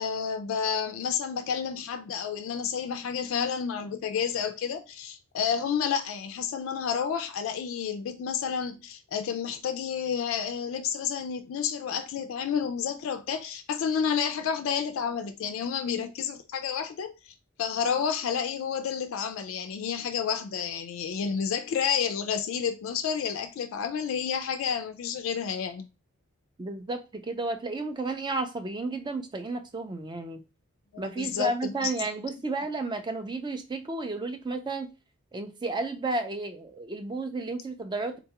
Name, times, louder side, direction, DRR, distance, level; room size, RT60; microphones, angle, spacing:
voice 1, 0.0-25.9 30.9-31.9, left 7 dB, 65° left, 0.3 m, -30 dB
voice 2, 26.6-30.4 31.0-34.9 35.3-38.2, right 2 dB, 20° right, 0.4 m, -32 dB
3.9 x 2.2 x 2.8 m
head